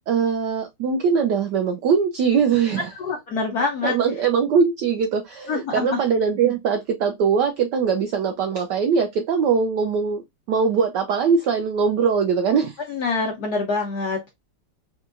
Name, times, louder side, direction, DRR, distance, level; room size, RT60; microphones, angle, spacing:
voice 1, 0.1-2.9 3.8-10.2 10.5-12.8, right 6 dB, 85° right, 0.9 m, -21 dB
voice 2, 3.0-3.9 5.5-6.0 12.9-14.3, left 4 dB, 70° left, 0.9 m, -25 dB
4.4 x 2.3 x 2.4 m
omnidirectional pair, 2.4 m